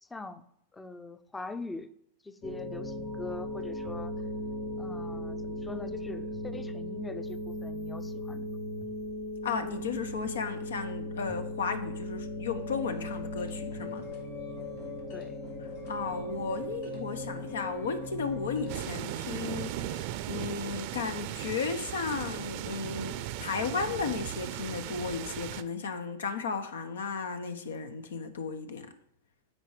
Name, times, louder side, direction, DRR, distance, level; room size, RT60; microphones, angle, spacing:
voice 1, 0.0-0.4 0.7-1.9 2.2-4.1 4.8-8.6 15.1-15.4, left 3 dB, 10° left, 11 dB, 0.5 m, -42 dB
sound 1, 2.4-18.8, left 1 dB, 45° left, 1.9 m, -38 dB
voice 2, 9.4-14.0 15.9-20.0 20.3-28.9, left 5 dB, 90° left, 9 dB, 1.0 m, -34 dB
sound 2, 12.8-19.7, equal, 70° left, 2.6 m, -52 dB
sound 3, 18.7-25.6, right 12 dB, 55° right, 0.5 m, -37 dB
9.1 x 4.5 x 4.9 m, 0.74 s
hypercardioid pair, 120°, 0 cm